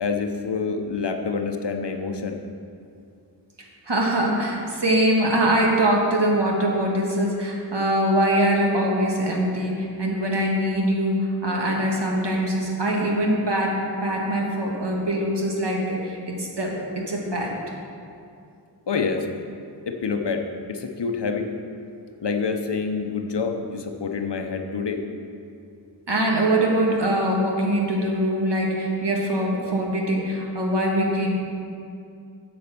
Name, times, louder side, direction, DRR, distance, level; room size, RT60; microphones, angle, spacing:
voice 1, 0.0-2.4 18.9-19.3 19.9-21.5 22.2-25.0, left 5 dB, 75° left, 5 dB, 0.9 m, -27 dB
voice 2, 3.9-17.5 26.1-31.3, right 1 dB, 75° right, -2 dB, 1.7 m, -23 dB
8.5 x 7.0 x 6.0 m, 2.5 s
wide cardioid pair, 45°, 42 cm